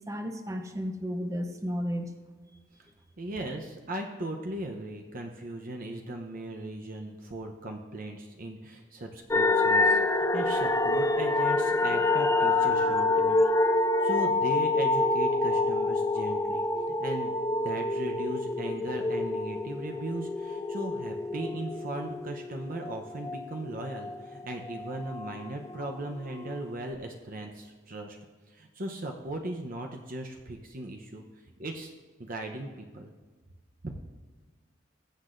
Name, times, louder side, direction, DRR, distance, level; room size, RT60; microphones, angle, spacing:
voice 1, 0.1-2.1, equal, 15° right, 5 dB, 0.9 m, -33 dB
voice 2, 3.2-13.5 14.0-17.3 17.6-28.2 28.5-31.2 31.6-31.9 32.2-33.1 33.8-33.9, right 1 dB, 50° right, 3 dB, 0.8 m, -38 dB
sound 1, 9.3-24.2 24.5-25.9 26.4-26.5, left 2 dB, 15° left, 0.4 m, -27 dB
21.0 x 7.7 x 2.6 m, 1.4 s
head